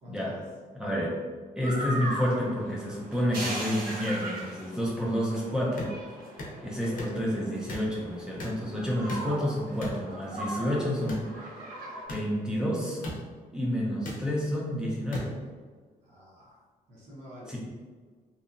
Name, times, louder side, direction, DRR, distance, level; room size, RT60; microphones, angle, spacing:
voice 1, 0.0-0.4 16.0-16.6 16.9-17.5, equal, 55° right, -6 dB, 0.9 m, -47 dB
voice 2, 0.8-1.2 1.6-5.9 6.6-11.5 12.1-13.0 13.5-15.4 17.5-17.6, equal, 5° right, -5 dB, 0.5 m, -29 dB
sound 1, 1.6-12.0, right 1 dB, 80° right, 0.7 m, -39 dB
sound 2, 5.8-5.9 6.4-6.5 7.0-7.2 7.7-7.9 8.4-8.6 9.1-9.3 9.8-10.0 11.1-11.3 12.1-12.2 13.0-13.2 14.0-14.2 15.1-15.3, left 1 dB, 70° left, 0.7 m, -37 dB
2.8 x 2.2 x 2.5 m, 1.5 s
cardioid pair, 160°, 15 cm